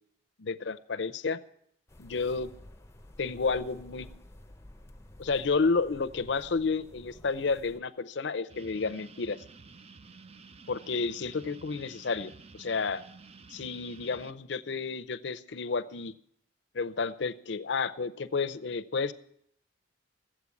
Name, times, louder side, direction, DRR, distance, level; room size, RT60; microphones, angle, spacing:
voice 1, 0.4-1.4 2.0-2.5 3.2-4.1 5.2-9.4 10.7-13.0 13.5-16.1 16.7-19.1, left 4 dB, 65° left, 11 dB, 0.6 m, -31 dB
sound 1, 1.9-7.8, left 1 dB, 15° left, 0.6 m, -52 dB
sound 2, 8.5-14.3, right 4 dB, 35° right, 0.5 m, -51 dB
14.0 x 7.7 x 8.4 m, 0.71 s
head